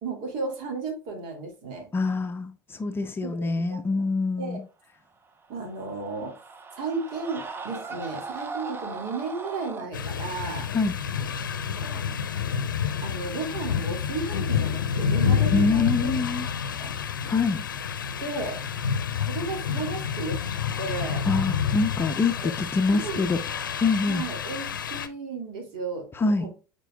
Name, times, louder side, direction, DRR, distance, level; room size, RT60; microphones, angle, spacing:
voice 1, 0.0-1.9 3.2-4.1 4.4-4.6 5.5-6.3 6.8-10.7 11.7-12.1 13.0-16.1 16.8-16.9 18.2-18.6 19.2-20.4 20.8-21.3 22.4-22.6 22.9-23.2 24.1-26.1 26.4-26.5, right 4 dB, 55° right, 2.8 m, -34 dB
voice 2, 1.9-4.6 10.7-11.0 15.5-16.5 17.2-17.6 21.3-23.4 23.8-24.2 26.1-26.5, left 4 dB, 20° left, 0.7 m, -25 dB
Screaming, 5.4-9.9, right 4 dB, 20° right, 1.0 m, -38 dB
sound 1, 9.9-25.1, left 7 dB, 75° left, 0.7 m, -29 dB
9.1 x 4.5 x 2.3 m
figure-of-eight pair, 75°, 11 cm